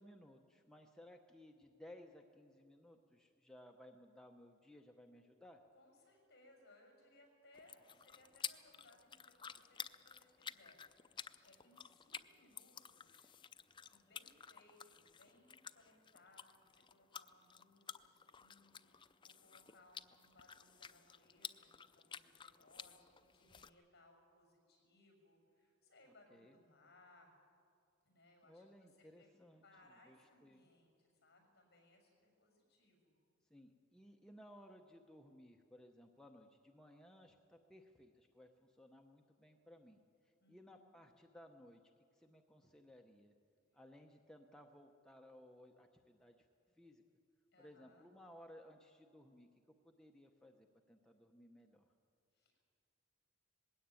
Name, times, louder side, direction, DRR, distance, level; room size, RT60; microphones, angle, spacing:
voice 1, 0.0-5.6 26.3-26.6 28.4-30.7 33.5-41.8 42.1-43.4 43.7-47.0 47.6-51.9, left 1 dB, 5° left, 2 dB, 0.9 m, -60 dB
voice 2, 5.7-13.3 13.9-27.4 28.0-28.9 29.2-29.3 29.6-33.2 40.4-41.0 43.7-43.8 47.5-48.1 52.3-52.7, left 2 dB, 55° left, 2 dB, 6.3 m, -68 dB
sound 1, 7.5-23.7, left 7 dB, 25° left, 0.5 m, -53 dB
20.0 x 16.5 x 9.0 m, 2.3 s
head